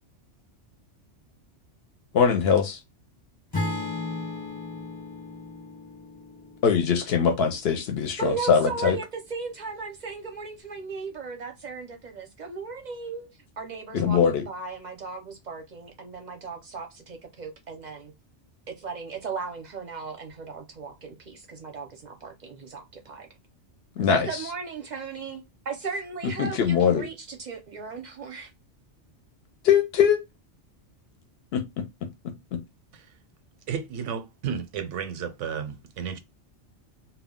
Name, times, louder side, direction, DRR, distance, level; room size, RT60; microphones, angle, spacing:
voice 1, 2.1-2.8 6.6-9.0 13.9-14.4 24.0-24.3 26.4-27.0 29.6-30.2 31.5-31.6 32.5-32.6, left 7 dB, 65° left, 0.7 m, -22 dB
Acoustic guitar / Strum, 3.5-7.7, left 2 dB, 25° left, 0.8 m, -35 dB
voice 2, 8.2-13.3 13.6-18.1 18.8-23.3 24.0-28.5, right 5 dB, 50° right, 0.6 m, -36 dB
voice 3, 33.7-36.2, right 7 dB, 85° right, 0.9 m, -32 dB
2.2 x 2.1 x 3.5 m
omnidirectional pair, 1.2 m